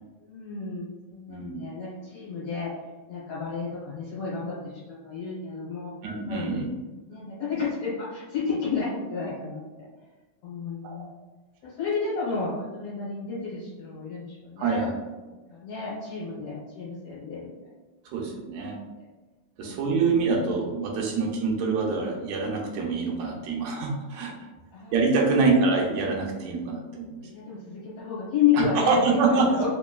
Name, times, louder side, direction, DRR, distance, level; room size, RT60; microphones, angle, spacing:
voice 1, 0.2-2.7 3.1-5.9 6.3-6.6 7.0-9.9 10.4-11.1 11.6-14.9 15.5-17.5 19.6-20.1 21.0-21.3 24.7-25.0 25.3-25.6 27.2-29.0 29.3-29.7, left 6 dB, 70° left, -8 dB, 1.9 m, -31 dB
voice 2, 1.3-1.6 6.0-6.7 10.8-10.9 14.6-14.9 18.1-18.8 19.6-24.5 24.9-27.3 28.5-29.7, right 4 dB, 80° right, -1 dB, 1.8 m, -25 dB
4.5 x 3.0 x 2.2 m, 1.2 s
omnidirectional pair, 3.6 m